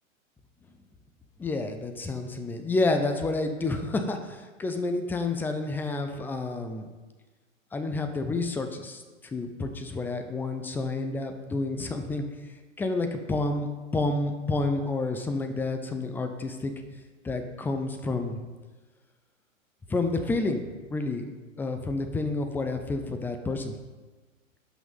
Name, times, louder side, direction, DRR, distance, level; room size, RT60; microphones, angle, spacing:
voice 1, 1.4-6.9 7.7-12.2 12.8-13.7 13.9-16.7 17.2-18.4 19.9-23.7, left 3 dB, 5° left, 6 dB, 0.5 m, -29 dB
12.0 x 6.0 x 5.4 m, 1.3 s
hypercardioid pair, 120°, 40 cm